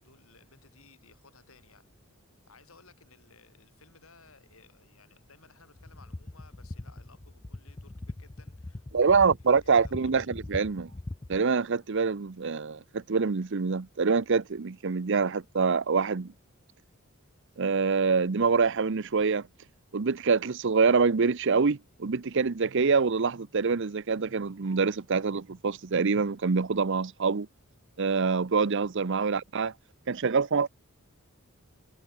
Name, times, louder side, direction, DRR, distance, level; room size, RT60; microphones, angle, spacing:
voice 1, 0.0-9.3 9.6-10.2 29.2-29.5, left 4 dB, 80° left, 7.9 m, -59 dB
sound 1, 5.7-11.4, left 2 dB, 20° left, 0.4 m, -42 dB
voice 2, 8.9-10.9 11.3-16.3 17.6-19.5 19.9-27.5 28.0-29.7 30.1-30.7, right 5 dB, 60° right, 0.7 m, -25 dB
head